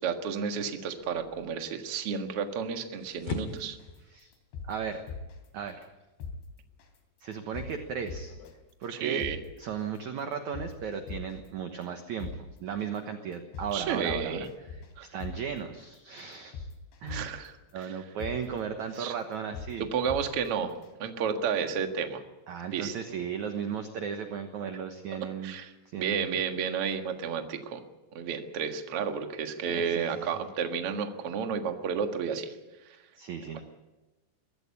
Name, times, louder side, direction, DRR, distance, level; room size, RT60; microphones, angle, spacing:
voice 1, 0.0-3.8 8.9-9.4 13.7-14.5 15.0-15.1 17.1-17.9 19.0-19.1 19.8-22.2 22.7-22.9 25.4-27.8 28.1-32.6 32.8-33.0, right 7 dB, 50° right, 5 dB, 1.8 m, -32 dB
sound 1, 1.0-8.5, left 3 dB, 65° left, 3.5 m, -44 dB
sound 2, 3.8-4.0 4.3-5.5 5.8-5.9 6.2-6.4 6.8-7.0 7.3-7.7 8.1-8.5 8.8-8.9 9.2-9.4 9.8-10.0 10.3-11.5 11.8-11.9 12.2-12.4 12.8-13.0 13.3-13.7 14.1-14.9 15.2-15.4 15.8-16.0 16.3-17.5 17.8-17.9 18.2-18.4 18.8-19.0 19.3-19.7 20.1-20.5 20.8-20.9, left 6 dB, 80° left, 4.9 m, -40 dB
voice 2, 4.6-5.0 5.5-5.9 7.2-8.3 8.8-9.2 9.6-12.3 12.6-14.5 15.0-16.7 17.0-17.3 17.7-19.9 22.5-25.5 25.9-26.4 29.7-30.4 33.2-33.6, right 7 dB, 65° right, 6 dB, 1.9 m, -36 dB
23.0 x 16.0 x 8.6 m, 1.1 s
omnidirectional pair, 5.0 m